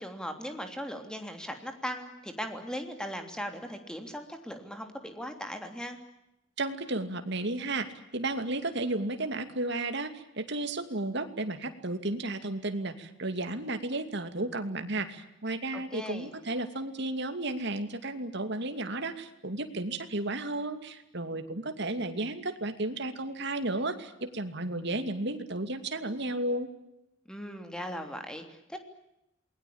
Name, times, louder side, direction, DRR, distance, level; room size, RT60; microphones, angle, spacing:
voice 1, 0.0-6.0 15.7-16.3 27.3-28.8, equal, 5° left, 5 dB, 3.2 m, -38 dB
voice 2, 6.6-7.9 8.1-26.7, right 2 dB, 60° right, 8 dB, 2.6 m, -33 dB
28.0 x 21.0 x 8.8 m, 0.85 s
head